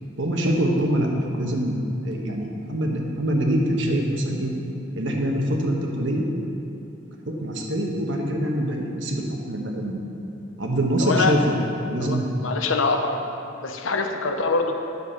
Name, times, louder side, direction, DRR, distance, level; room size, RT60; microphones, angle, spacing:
voice 1, 0.2-4.5 4.9-6.2 7.3-10.0 10.6-11.6 11.8-12.3, right 1 dB, 70° right, 0 dB, 1.3 m, -24 dB
voice 2, 11.0-11.4 12.0-13.2 13.6-14.7, left 4 dB, 85° left, 5 dB, 0.8 m, -24 dB
9.6 x 7.1 x 5.6 m, 2.8 s
head